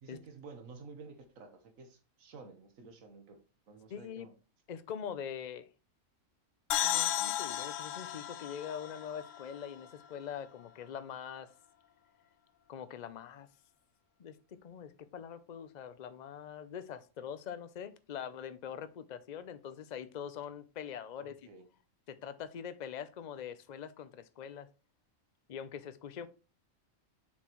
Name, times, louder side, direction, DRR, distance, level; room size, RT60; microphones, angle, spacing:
voice 1, 0.0-3.4 3.7-4.3 21.2-21.7, right 4 dB, 85° right, 1.6 m, -52 dB
voice 2, 3.9-4.3 4.7-5.7 6.8-11.5 12.7-13.5 14.2-21.5 22.1-24.7 25.5-26.3, left 8 dB, 45° left, 0.6 m, -43 dB
sound 1, 6.7-10.3, left 12 dB, 75° left, 0.9 m, -35 dB
7.3 x 6.3 x 3.0 m
omnidirectional pair, 1.4 m